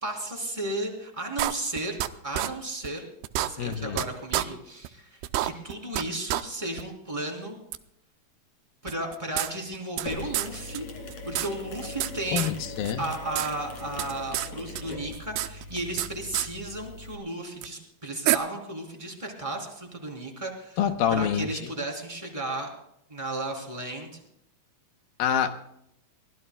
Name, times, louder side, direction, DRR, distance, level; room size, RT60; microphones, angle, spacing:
voice 1, 0.0-2.0 2.2-3.0 3.4-7.6 8.8-10.9 11.2-12.5 13.0-20.8 21.1-22.7 23.1-24.2, right 1 dB, 10° right, 1 dB, 2.9 m, -34 dB
sound 1, 1.4-2.1 2.3-2.5 2.8-2.9 3.2-4.0 4.3-4.4 4.8-4.9 5.2-6.0 6.3-6.4 6.8-6.9 7.7-7.8 8.9-10.1 10.3-10.5 10.7-10.8 11.1-12.1 12.4-12.5 12.8-13.5 13.7-14.5 14.7-16.1 16.3-16.5 17.6-17.7 18.3-18.4, right 15 dB, 85° right, 2.7 m, -28 dB
voice 2, 3.6-4.0 12.3-13.0 20.8-21.5 25.2-25.6, left 9 dB, 75° left, 8 dB, 2.5 m, -26 dB
Mechanisms, 10.1-17.2, left 2 dB, 50° left, 3.3 m, -40 dB
24.0 x 18.0 x 2.3 m, 0.75 s
omnidirectional pair, 4.6 m